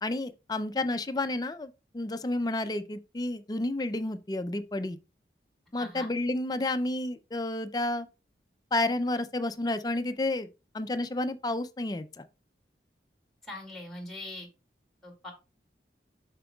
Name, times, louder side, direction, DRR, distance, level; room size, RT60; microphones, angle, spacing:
voice 1, 0.0-5.0 5.7-8.1 8.7-10.5 10.7-12.2, left 2 dB, 20° left, 0.4 m, -31 dB
voice 2, 5.8-6.1 13.5-14.5 15.0-15.3, left 1 dB, ahead, 2.0 m, -41 dB
7.4 x 6.0 x 2.3 m
head